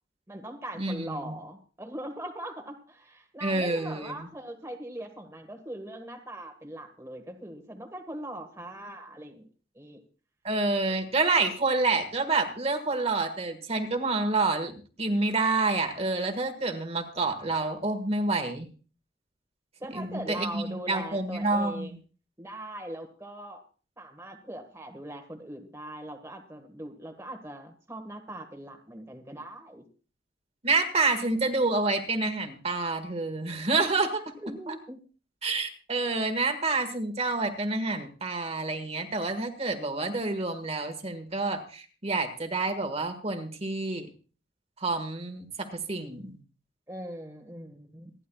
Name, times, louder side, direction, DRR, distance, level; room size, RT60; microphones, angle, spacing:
voice 1, 0.3-9.5 9.7-10.0 19.8-21.9 22.4-23.6 24.0-29.8 34.4-35.0 46.9-48.1, right 1 dB, 15° right, 3 dB, 1.5 m, -40 dB
voice 2, 0.8-1.3 3.4-4.1 10.4-18.7 19.9-22.0 30.6-34.3 35.4-44.1 44.8-46.4, right 3 dB, 35° right, 6 dB, 1.6 m, -28 dB
27.5 x 11.0 x 2.4 m, 0.37 s
head